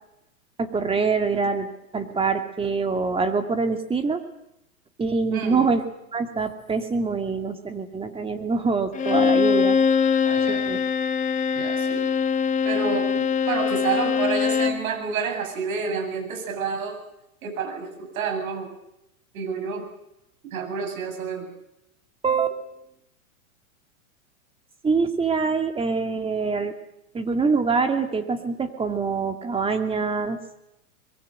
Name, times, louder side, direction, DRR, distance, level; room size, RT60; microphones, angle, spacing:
voice 1, 0.6-4.2 5.0-5.8 6.1-9.8 10.5-10.8 22.2-22.6 24.8-26.7 27.1-30.4, right 4 dB, 15° right, 6 dB, 2.3 m, -25 dB
voice 2, 5.3-5.7 10.3-10.7 11.6-12.1 12.6-17.0 17.4-18.7 19.3-19.9 20.5-21.5, right 5 dB, 70° right, 5 dB, 7.7 m, -29 dB
Bowed string instrument, 8.9-14.9, left 6 dB, 15° left, 1.2 m, -22 dB
24.0 x 22.5 x 7.8 m, 0.83 s
hypercardioid pair, 130°, 43 cm